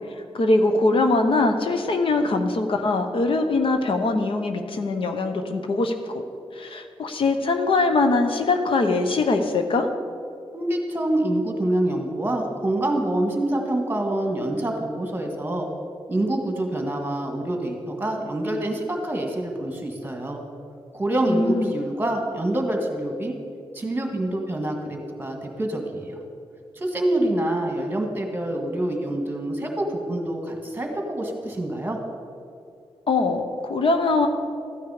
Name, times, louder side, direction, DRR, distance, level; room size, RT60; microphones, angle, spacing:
voice 1, 0.3-5.9 6.6-9.9 21.3-21.8 33.1-34.3, left 3 dB, 65° left, 6 dB, 0.9 m, -22 dB
voice 2, 10.5-15.7 16.1-20.4 20.9-23.4 23.7-26.2 26.8-32.0, right 1 dB, 20° right, 2 dB, 1.7 m, -26 dB
13.5 x 9.4 x 4.9 m, 2.5 s
wide cardioid pair, 120°, 10 cm